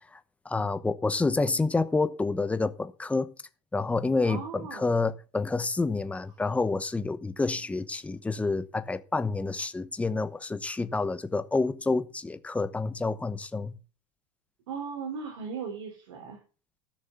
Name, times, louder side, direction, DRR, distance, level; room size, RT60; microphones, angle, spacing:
voice 1, 0.4-3.3 3.7-13.8, left 3 dB, 10° left, 0.9 m, -28 dB
voice 2, 4.2-4.9 14.7-16.4, right 6 dB, 90° right, 4.2 m, -37 dB
15.0 x 6.4 x 5.6 m
supercardioid pair, 135°, 15 cm